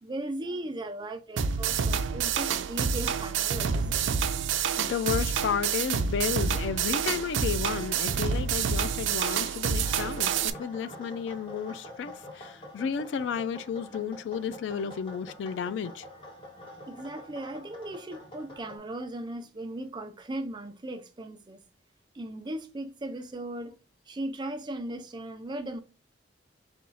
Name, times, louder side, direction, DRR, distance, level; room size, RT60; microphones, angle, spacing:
voice 1, 0.0-4.1 16.9-21.6 22.1-23.8 24.1-25.8, right 1 dB, 25° right, 0.5 m, -37 dB
sound 1, 1.4-10.5, right 6 dB, 85° right, 0.4 m, -28 dB
voice 2, 4.8-16.0, left 7 dB, 75° left, 0.3 m, -32 dB
sound 2, 9.8-18.8, left 1 dB, 30° left, 1.1 m, -46 dB
4.3 x 2.3 x 3.9 m
head